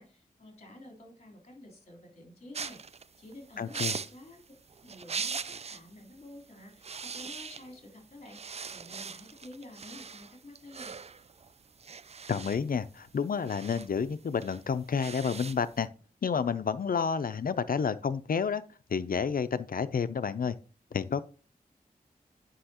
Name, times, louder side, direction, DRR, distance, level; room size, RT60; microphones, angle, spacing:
voice 1, 0.0-4.4 4.8-11.0, left 1 dB, 45° left, 0 dB, 3.5 m, -50 dB
sound 1, 2.5-5.9 6.2-6.4 6.7-7.9 8.2-15.8, right 5 dB, 45° right, 0.4 m, -40 dB
voice 2, 3.6-4.0 12.3-15.9 16.2-18.6 18.9-20.6 20.9-21.2, left 6 dB, 70° left, 13 dB, 0.5 m, -30 dB
10.0 x 5.5 x 2.9 m, 0.41 s
wide cardioid pair, 80°, 15 cm